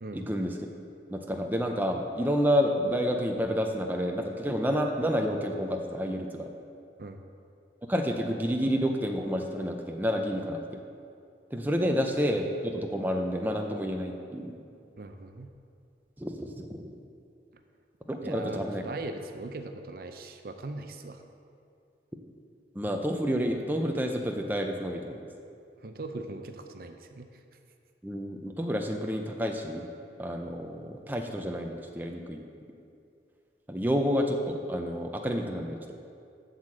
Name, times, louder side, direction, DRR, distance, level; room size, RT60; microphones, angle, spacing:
voice 1, 0.1-0.6 1.1-6.5 7.9-10.6 11.5-14.5 16.2-16.9 18.1-18.8 22.7-25.2 28.0-29.9 30.2-32.4 33.7-35.9, equal, 10° right, 2 dB, 0.6 m, -29 dB
voice 2, 15.0-15.5 18.2-21.2 25.8-27.3, right 2 dB, 55° right, 6 dB, 0.6 m, -40 dB
8.0 x 6.6 x 7.4 m, 2.5 s
head